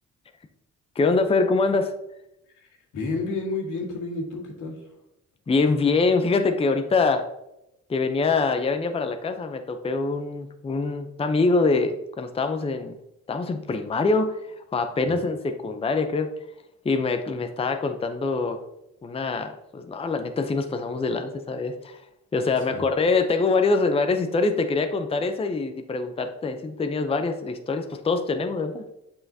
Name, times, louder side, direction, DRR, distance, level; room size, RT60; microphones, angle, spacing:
voice 1, 1.0-1.9 5.5-7.2 7.9-13.0 13.3-16.3 16.8-18.6 19.0-22.0 22.3-28.8, left 3 dB, 20° left, 7 dB, 0.6 m, -24 dB
voice 2, 2.5-5.0 15.0-15.2 15.6-15.7 22.7-22.9, left 3 dB, 85° left, -1 dB, 1.8 m, -31 dB
7.6 x 5.7 x 2.7 m, 0.86 s
cardioid pair, 90°, 30 cm